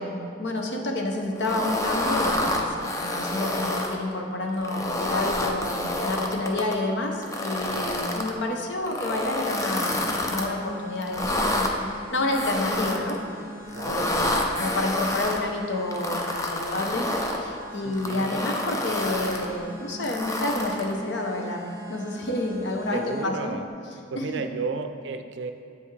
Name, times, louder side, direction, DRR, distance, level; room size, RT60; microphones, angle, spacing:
voice 1, 0.0-13.2 13.9-23.6 24.2-24.4, left 2 dB, 65° left, 2 dB, 0.8 m, -29 dB
sound 1, 1.4-3.9 4.5-6.7 7.2-8.3 8.8-10.5 11.0-11.7 12.3-13.2 13.7-15.4 15.9-17.4 17.9-19.5 20.0-20.9, left 1 dB, 15° left, 0.5 m, -28 dB
voice 2, 7.7-8.0 13.7-14.4 17.8-18.4 22.9-23.7 24.1-25.5, right 4 dB, 65° right, 8 dB, 0.4 m, -33 dB
sound 2, 9.7-23.2, right 1 dB, 15° right, 1.2 m, -43 dB
7.7 x 5.6 x 3.2 m, 2.5 s
head